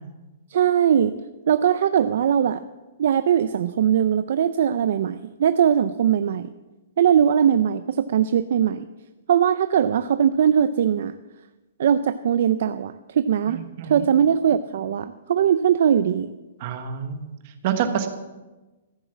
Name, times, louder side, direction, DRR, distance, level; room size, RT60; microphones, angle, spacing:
voice 1, 0.5-1.1 1.5-2.6 3.0-6.5 7.0-8.9 9.3-11.1 11.8-16.3, right 9 dB, 50° right, 11 dB, 0.4 m, -20 dB
voice 2, 13.5-14.1 16.6-17.3 17.6-18.1, right 8 dB, 30° right, 7 dB, 1.2 m, -27 dB
14.5 x 7.2 x 7.1 m, 1.1 s
hypercardioid pair, 180°, 0 cm